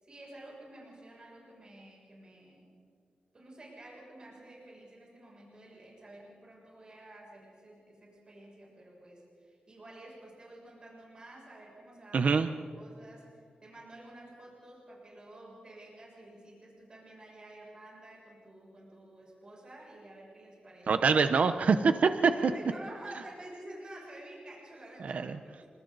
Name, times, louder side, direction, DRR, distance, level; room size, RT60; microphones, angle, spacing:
voice 1, 0.0-2.8 3.3-21.0 22.2-25.7, right 1 dB, 35° right, -4 dB, 6.8 m, -50 dB
voice 2, 12.1-12.5 20.9-22.3 25.0-25.4, right 5 dB, 55° right, 9 dB, 0.8 m, -25 dB
29.5 x 26.0 x 4.1 m, 2.3 s
wide cardioid pair, 175°, 3 cm